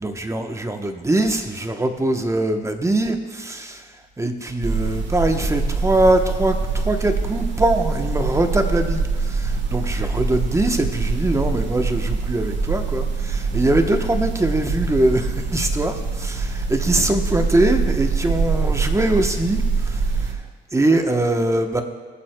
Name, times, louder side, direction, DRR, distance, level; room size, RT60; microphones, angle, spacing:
voice 1, 0.0-3.8 4.2-20.3 20.7-21.8, right 1 dB, 15° right, 6 dB, 0.9 m, -22 dB
sound 1, 4.6-20.3, right 4 dB, 70° right, 1.4 m, -24 dB
20.5 x 7.4 x 2.2 m, 1.4 s
cardioid pair, 90°, 20 cm